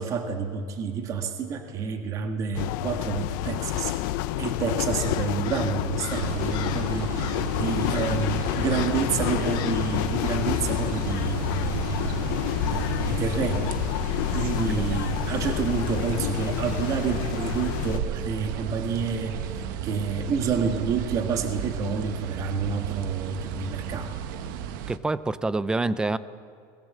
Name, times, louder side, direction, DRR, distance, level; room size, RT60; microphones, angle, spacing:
voice 1, 0.0-12.1 12.7-13.8 14.3-24.2, right 5 dB, 30° right, 5 dB, 1.7 m, -29 dB
sound 1, 2.5-18.0, left 16 dB, 70° left, 0.7 m, -29 dB
Crow, 4.9-6.9 7.2-7.6 7.9-8.3 8.7-9.1 9.5-9.9, left 13 dB, 40° left, 1.1 m, -40 dB
sound 2, 6.1-25.0, right 9 dB, 75° right, 1.2 m, -34 dB
voice 2, 24.9-26.2, right 2 dB, 5° right, 15 dB, 0.5 m, -26 dB
22.5 x 21.0 x 7.6 m, 2.4 s
cardioid pair, 180°, 11 cm